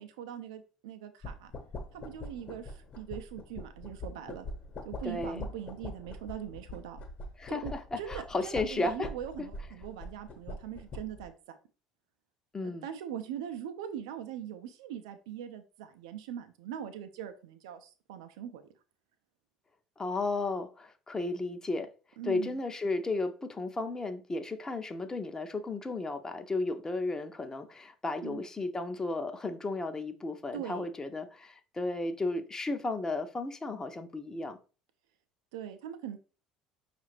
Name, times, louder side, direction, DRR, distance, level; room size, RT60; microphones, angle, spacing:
voice 1, 0.0-1.5 1.9-4.5 4.8-7.0 7.5-11.6 12.6-18.6 22.2-22.6 28.2-28.4 30.5-30.9 35.5-36.2, right 9 dB, 70° right, 0.4 m, -41 dB
sound 1, 1.2-11.3, left 2 dB, 45° left, 1.1 m, -43 dB
voice 2, 5.0-5.4 7.4-9.1 9.4-9.5 12.5-12.9 20.0-21.9 22.2-34.6, left 2 dB, 20° left, 0.6 m, -34 dB
5.5 x 2.5 x 3.2 m
figure-of-eight pair, 65°, 3 cm